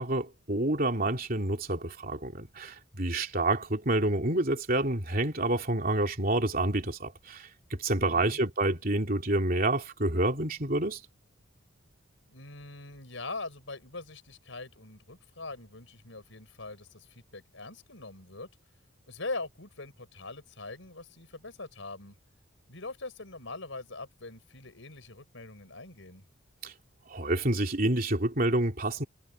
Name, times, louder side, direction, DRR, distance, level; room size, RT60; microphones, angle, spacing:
voice 1, 0.0-11.0 26.6-26.7 27.1-29.0, right 2 dB, 45° right, 3.2 m, -28 dB
voice 2, 8.0-8.4 12.3-18.5 19.1-22.1 22.7-26.2, left 3 dB, 70° left, 5.0 m, -42 dB
head